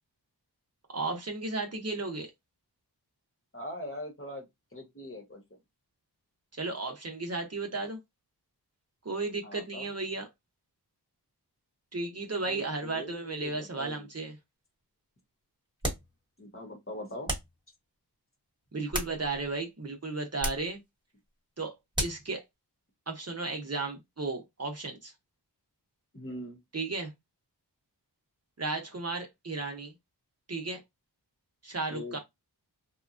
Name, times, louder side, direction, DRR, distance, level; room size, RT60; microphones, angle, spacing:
voice 1, 0.9-2.3 6.6-8.0 9.0-10.3 11.9-14.3 18.7-20.8 21.6-21.7 22.0-22.4 23.1-25.1 26.7-27.1 28.6-29.9 30.5-30.8 31.6-32.2, right 3 dB, 40° right, 0.7 m, -34 dB
voice 2, 3.5-4.5 4.7-5.6 9.4-9.9 12.5-14.1 16.4-17.3 26.1-26.6 31.9-32.2, left 1 dB, 30° left, 1.0 m, -41 dB
sound 1, 15.8-16.1 17.3-17.6 18.6-19.5 20.4-20.7 21.9-22.3, right 1 dB, 10° right, 1.2 m, -34 dB
2.9 x 2.3 x 2.4 m
wide cardioid pair, 65°, 40 cm